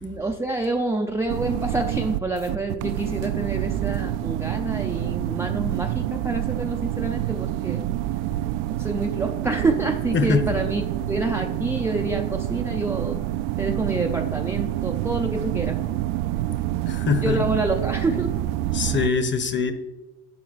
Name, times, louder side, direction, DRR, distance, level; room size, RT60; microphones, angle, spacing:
voice 1, 0.0-7.9 8.8-10.8 11.1-13.2 13.6-15.8 16.5-16.6 17.2-18.5, right 2 dB, 5° right, 0.4 m, -27 dB
sound 1, 1.3-19.1, right 14 dB, 75° right, 0.5 m, -27 dB
voice 2, 16.9-17.4 18.7-19.7, left 5 dB, 30° left, 1.0 m, -23 dB
11.0 x 8.3 x 4.1 m
cardioid pair, 135°, 39 cm